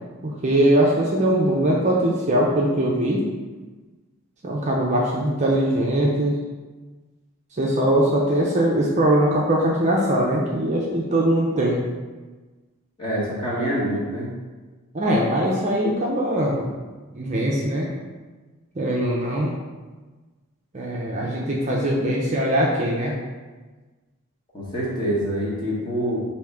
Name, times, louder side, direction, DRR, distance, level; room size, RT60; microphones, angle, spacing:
voice 1, 0.2-3.2 4.4-6.4 7.6-11.8 14.9-16.7 17.1-17.9 18.8-19.5 20.7-23.1, right 1 dB, 30° right, -3 dB, 0.5 m, -21 dB
voice 2, 13.0-14.3 24.5-26.2, equal, 20° left, -6 dB, 1.1 m, -26 dB
5.1 x 2.7 x 3.4 m, 1.3 s
head